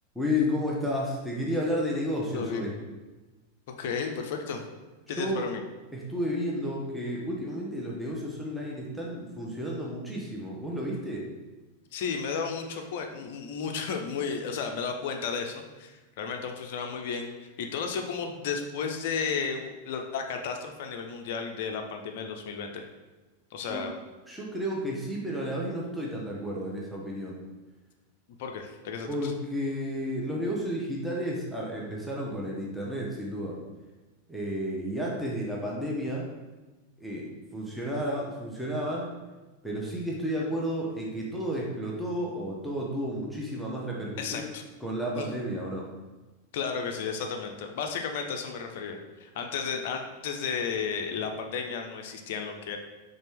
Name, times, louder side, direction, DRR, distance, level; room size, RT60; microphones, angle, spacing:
voice 1, 0.1-2.7 5.1-5.5 5.9-11.3 23.6-23.8 24.3-27.4 29.1-33.6 34.3-36.3 37.0-39.1 39.6-44.5 44.8-45.9, equal, 5° right, -4 dB, 0.8 m, -32 dB
voice 2, 2.3-2.7 3.8-4.6 5.1-5.6 11.9-22.9 23.5-23.9 28.4-29.3 44.2-44.6 45.2-45.3 46.5-52.8, left 6 dB, 50° left, 4 dB, 0.5 m, -33 dB
4.1 x 3.4 x 3.5 m, 1.2 s
figure-of-eight pair, 90°, 0 cm